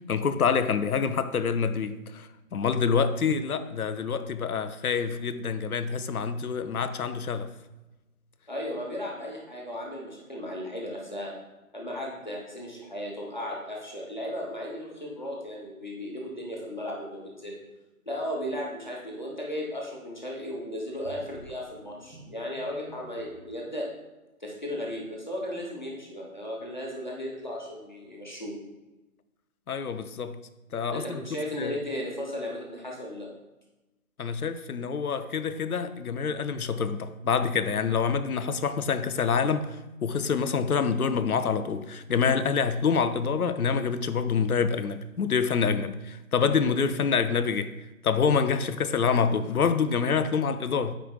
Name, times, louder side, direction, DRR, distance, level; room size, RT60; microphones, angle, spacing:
voice 1, 0.1-7.5 29.7-30.4 30.7-31.2 31.6-31.8 34.2-47.8 48.0-50.9, left 6 dB, 85° left, 0.6 m, -26 dB
voice 2, 8.5-11.3 11.7-17.6 18.1-23.9 24.4-28.6 30.9-33.3, equal, 30° left, 1.0 m, -35 dB
sound 1, 20.9-23.3, right 2 dB, 70° right, 1.5 m, -49 dB
9.0 x 5.0 x 2.3 m
figure-of-eight pair, 180°, 43 cm